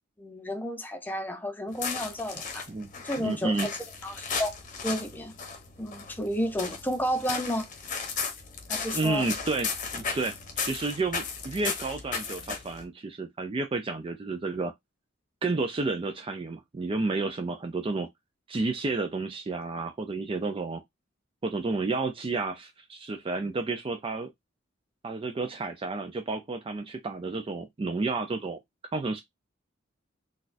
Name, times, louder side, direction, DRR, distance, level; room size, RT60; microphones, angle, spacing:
voice 1, 0.2-2.7 3.0-3.7 4.0-4.5 4.8-5.3 5.8-7.7 8.7-9.3, equal, 10° left, 0.7 m, -31 dB
sound 1, 1.7-12.8, left 5 dB, 40° left, 0.8 m, -36 dB
voice 2, 3.2-3.7 8.9-14.7 15.4-18.1 18.5-20.8 21.4-24.3 25.0-28.6 28.9-29.2, right 3 dB, 30° right, 0.4 m, -31 dB
4.0 x 2.3 x 2.5 m
head